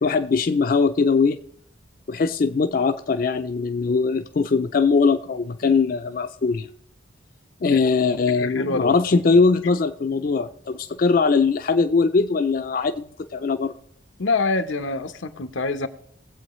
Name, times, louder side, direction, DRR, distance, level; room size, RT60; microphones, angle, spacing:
voice 1, 0.0-1.4 2.1-6.7 7.6-13.7, left 4 dB, 45° left, 0.4 m, -21 dB
voice 2, 8.3-9.0 14.2-15.9, left 3 dB, 90° left, 0.9 m, -25 dB
19.5 x 7.9 x 3.1 m
head